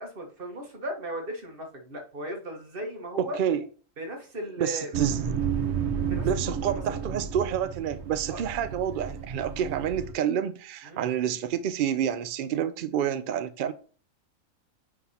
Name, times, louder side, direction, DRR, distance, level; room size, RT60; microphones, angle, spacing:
voice 1, 0.0-3.4 4.0-5.0 6.1-6.3 6.7-7.0 8.3-8.4 10.8-11.0 13.7-13.8, right 1 dB, 40° right, 1.6 m, -37 dB
voice 2, 3.2-3.6 4.6-5.2 6.2-13.7, right 9 dB, 80° right, 0.4 m, -28 dB
sound 1, 4.9-10.1, right 7 dB, 60° right, 1.0 m, -32 dB
9.3 x 3.8 x 2.8 m
omnidirectional pair, 1.4 m